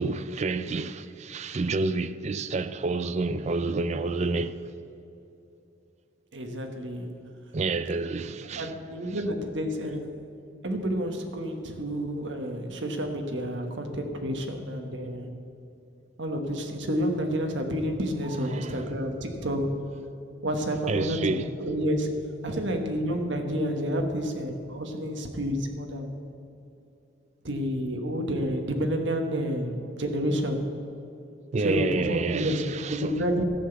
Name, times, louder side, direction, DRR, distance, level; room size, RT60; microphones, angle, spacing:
voice 1, 0.0-4.5 7.5-8.7 18.5-18.8 20.9-21.5 22.5-22.6 31.5-33.2, right 3 dB, 35° right, 0.4 m, -29 dB
voice 2, 6.3-7.1 8.5-10.1 10.6-15.3 16.2-19.9 20.4-26.2 27.4-30.7 31.6-33.4, equal, 70° right, 1.2 m, -29 dB
14.0 x 5.9 x 7.9 m
head